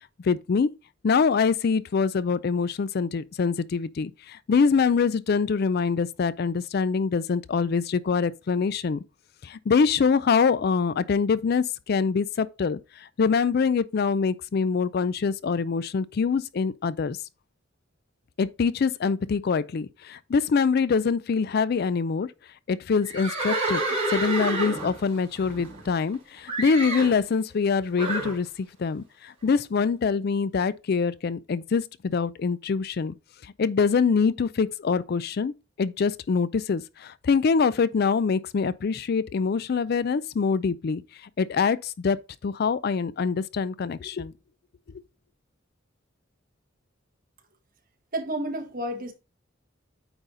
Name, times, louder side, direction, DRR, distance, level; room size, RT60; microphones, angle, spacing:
voice 1, 0.2-0.7 1.0-9.0 9.4-17.2 18.4-22.3 22.7-23.8 24.1-33.1 33.6-35.5 35.8-41.0 41.4-44.3, left 5 dB, 55° left, 0.4 m, -24 dB
Livestock farm animals working animals, 23.0-26.1 26.5-27.2 28.0-28.4, right 2 dB, 30° right, 3.7 m, -29 dB
voice 2, 48.1-49.1, right 1 dB, 45° right, 1.5 m, -30 dB
8.9 x 4.0 x 3.9 m
head